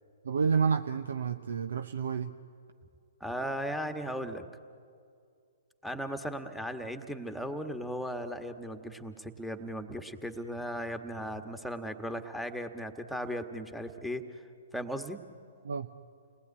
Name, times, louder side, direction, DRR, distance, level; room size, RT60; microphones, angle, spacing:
voice 1, 0.2-2.3 15.6-15.9, right 6 dB, 70° right, 8 dB, 0.9 m, -29 dB
voice 2, 3.2-4.5 5.8-14.2 14.7-15.2, equal, ahead, 6 dB, 1.6 m, -37 dB
29.5 x 20.0 x 9.8 m, 2.4 s
figure-of-eight pair, 125°, 0 cm